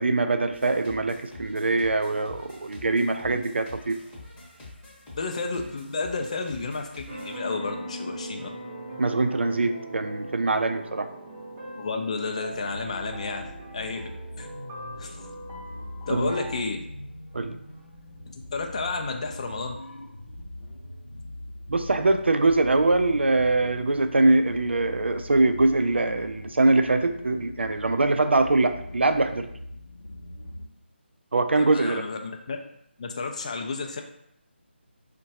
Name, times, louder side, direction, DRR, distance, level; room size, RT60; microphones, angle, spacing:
voice 1, 0.0-4.0 9.0-11.1 16.1-16.3 17.3-17.6 21.7-29.5 31.3-32.0, right 2 dB, 70° right, 8 dB, 0.3 m, -23 dB
sound 1, 0.5-7.4, left 2 dB, 15° left, 0.8 m, -46 dB
voice 2, 5.2-8.5 11.8-14.0 14.4-14.5 15.0-15.3 16.1-16.8 18.3-19.8 31.6-32.6 33.0-34.0, left 4 dB, 35° left, 4 dB, 0.4 m, -31 dB
sound 2, 7.1-16.6, right 1 dB, 15° right, 0.6 m, -40 dB
sound 3, 12.5-30.7, left 1 dB, 85° left, 0.6 m, -42 dB
4.4 x 2.2 x 2.7 m, 0.74 s
figure-of-eight pair, 155°, 6 cm